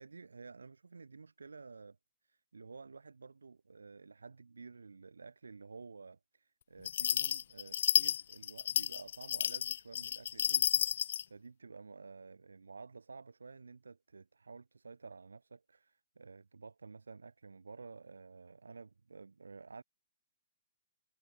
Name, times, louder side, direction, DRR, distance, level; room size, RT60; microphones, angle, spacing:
voice 1, 0.0-2.0 2.2-19.8, right 4 dB, 85° right, 7.9 m, -52 dB
sound 1, 6.8-11.2, left 9 dB, 60° left, 0.4 m, -31 dB
hypercardioid pair, 130°, 0 cm